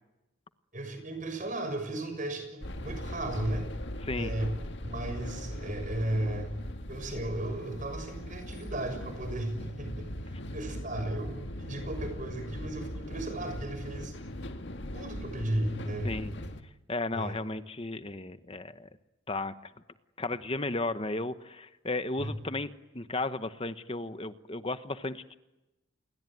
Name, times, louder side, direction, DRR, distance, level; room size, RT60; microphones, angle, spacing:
voice 1, 0.7-3.7 4.1-4.5 4.8-6.5 6.9-14.1 14.9-16.1 17.1-17.3 22.2-22.3, right 1 dB, 40° right, 6 dB, 6.7 m, -35 dB
sound 1, 2.6-16.6, left 1 dB, 55° left, 2.0 m, -39 dB
voice 2, 16.9-18.9 19.3-19.7 20.2-25.3, left 2 dB, 25° left, 11 dB, 1.0 m, -34 dB
28.5 x 22.0 x 9.3 m, 0.99 s
head